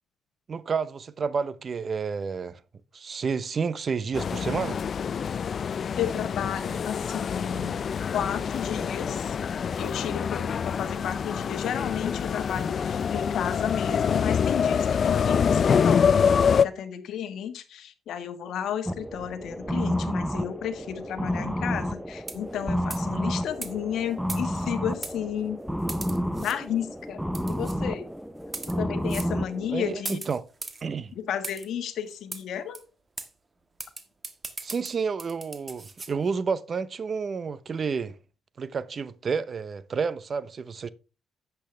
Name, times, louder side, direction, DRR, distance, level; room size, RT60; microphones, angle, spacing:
voice 1, 0.5-2.6 2.9-4.8 29.7-30.4 30.8-31.1 34.6-38.2 38.6-40.9, right 5 dB, 45° right, 0.7 m, -30 dB
sound 1, 4.1-16.6, left 7 dB, 50° left, 0.4 m, -25 dB
voice 2, 6.0-7.8 8.1-9.4 9.8-25.6 26.4-27.2 27.5-28.1 28.8-30.2 31.1-32.8, left 9 dB, 75° left, 1.4 m, -33 dB
sound 2, 18.9-30.0, equal, ahead, 0.7 m, -31 dB
sound 3, 22.2-22.6 22.9-23.1 23.6-23.7 24.3-24.7 25.0-25.2 25.9-26.6 27.3-27.8 28.4-28.8 29.1-29.3 30.0-30.8 31.4-31.7 32.3-32.4 32.7-32.8 33.2-33.3 33.8-36.1, right 3 dB, 30° right, 1.4 m, -38 dB
10.5 x 8.1 x 3.3 m
cardioid pair, 90°, 0 cm